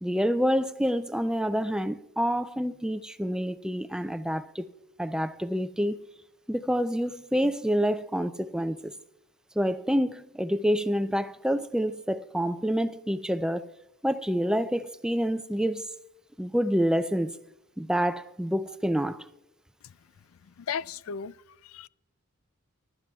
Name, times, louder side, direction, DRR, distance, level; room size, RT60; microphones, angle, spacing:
voice 1, 0.0-4.7 5.0-6.0 6.5-8.9 9.6-13.7 14.0-15.9 16.4-17.4 17.8-19.3, equal, 5° right, 0.3 m, -27 dB
voice 2, 20.4-21.9, left 7 dB, 75° left, 0.4 m, -36 dB
23.0 x 12.0 x 2.3 m
head